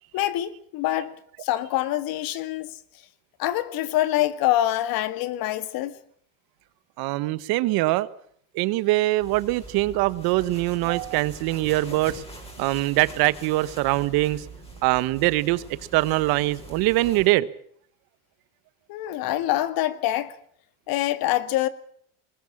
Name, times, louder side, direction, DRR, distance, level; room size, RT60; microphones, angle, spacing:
voice 1, 0.1-1.1 1.4-2.8 3.4-6.0 18.9-20.3 20.9-21.7, left 14 dB, 60° left, 2.0 m, -25 dB
voice 2, 7.0-8.1 8.5-12.2 12.6-14.4 14.8-15.6 15.9-17.5, right 18 dB, 60° right, 1.4 m, -23 dB
sound 1, 9.2-17.3, right 2 dB, 15° left, 6.8 m, -43 dB
20.5 x 20.5 x 7.4 m
supercardioid pair, 130°, 40 cm